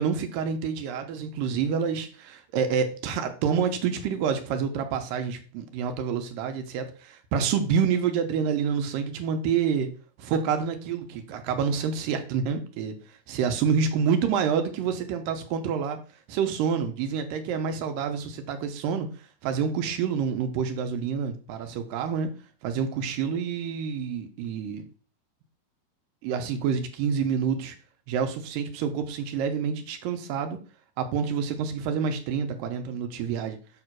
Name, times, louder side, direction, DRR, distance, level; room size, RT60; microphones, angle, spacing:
voice 1, 0.0-9.9 10.2-13.0 13.3-16.0 16.3-19.1 19.4-22.3 22.6-24.8 26.2-27.8 28.1-30.6 31.0-33.6, right 6 dB, 80° right, 7 dB, 2.4 m, -28 dB
7.2 x 2.9 x 6.0 m, 0.38 s
omnidirectional pair, 4.0 m